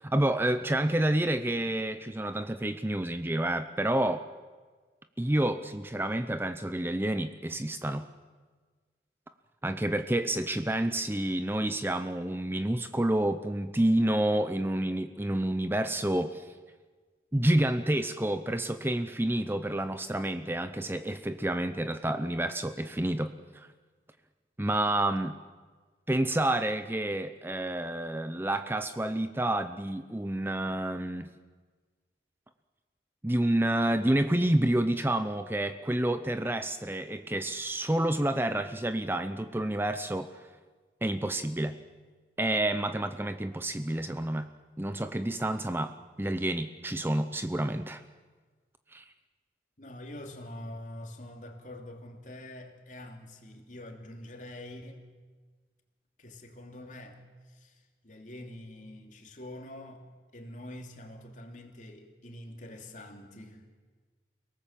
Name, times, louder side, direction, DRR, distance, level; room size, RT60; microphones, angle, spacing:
voice 1, 0.0-4.2 5.2-8.1 9.6-16.5 17.3-23.7 24.6-25.4 26.1-31.3 33.2-40.4 41.0-41.8 42.4-44.5 44.8-48.0 48.9-49.0, right 1 dB, 10° right, 9 dB, 0.6 m, -29 dB
voice 2, 49.8-55.1 56.2-60.0 60.3-63.7, left 1 dB, 45° left, 3 dB, 3.0 m, -45 dB
29.5 x 18.5 x 7.5 m, 1.4 s
head